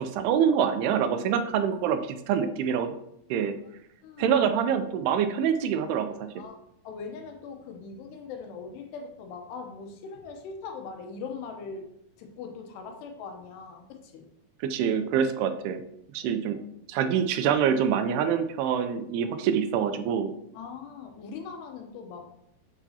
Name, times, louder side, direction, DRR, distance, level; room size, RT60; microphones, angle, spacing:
voice 1, 0.0-2.9 3.3-3.6 4.2-6.4 14.6-15.8 16.1-16.6 16.9-20.3, right 8 dB, 85° right, 8 dB, 2.5 m, -25 dB
voice 2, 4.0-4.4 6.3-6.6 6.8-11.9 12.2-14.2 16.9-17.1 20.5-22.3, left 5 dB, 85° left, 4 dB, 3.0 m, -41 dB
8.1 x 5.6 x 2.8 m, 0.75 s
omnidirectional pair, 4.7 m